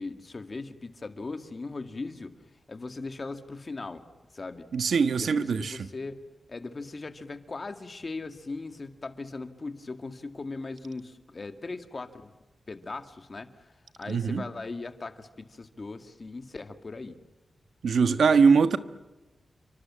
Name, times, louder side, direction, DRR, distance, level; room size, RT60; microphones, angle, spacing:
voice 1, 0.0-2.4 2.7-4.0 4.3-4.7 5.2-6.2 6.5-12.3 12.7-17.2, left 3 dB, 35° left, 2.0 m, -39 dB
voice 2, 4.7-5.9 14.1-14.5 17.8-18.8, right 5 dB, 85° right, 1.4 m, -22 dB
29.5 x 25.0 x 7.5 m
wide cardioid pair, 155°, 0 cm